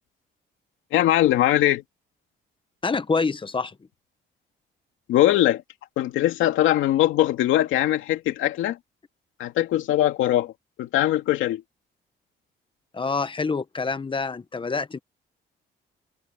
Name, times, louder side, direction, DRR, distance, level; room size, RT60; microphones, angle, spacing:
voice 1, 0.9-1.8 5.1-5.6 6.0-8.8 9.4-10.5 10.8-11.6, left 13 dB, 90° left, 2.5 m, -21 dB
voice 2, 2.8-3.8 12.9-15.0, left 4 dB, 25° left, 1.2 m, -26 dB
cardioid pair, 90°, 20 cm